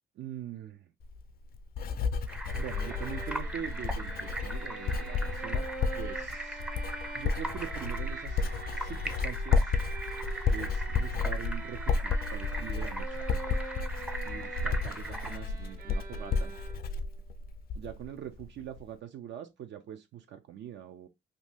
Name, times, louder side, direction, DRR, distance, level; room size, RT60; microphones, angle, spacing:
voice 1, 0.2-0.9 2.6-5.7 6.0-6.6 7.1-8.5 8.8-9.7 10.5-13.2 14.2-16.6 17.7-21.1, right 9 dB, 65° right, 0.5 m, -43 dB
Writing, 1.0-18.1 18.4-18.8, left 4 dB, 50° left, 0.4 m, -32 dB
sound 1, 2.3-15.4, right 1 dB, 5° right, 0.5 m, -40 dB
Bowed string instrument, 2.5-17.1, right 3 dB, 45° right, 1.0 m, -45 dB
2.7 x 2.6 x 3.3 m
cardioid pair, 90°, 20 cm